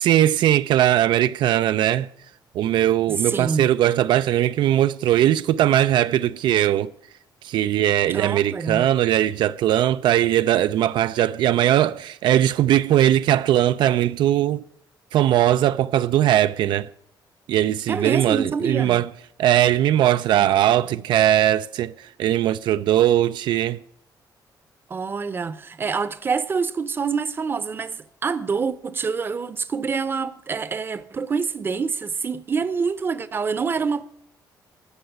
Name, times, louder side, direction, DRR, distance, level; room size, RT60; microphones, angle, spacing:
voice 1, 0.0-2.1 2.5-6.9 7.4-14.6 15.1-16.9 17.5-19.1 19.4-23.8, right 12 dB, 75° right, 0.4 m, -19 dB
voice 2, 3.1-3.7 8.1-8.9 17.9-19.0 24.9-34.0, right 5 dB, 30° right, 0.7 m, -26 dB
13.5 x 6.5 x 9.2 m
cardioid pair, 145°, 8 cm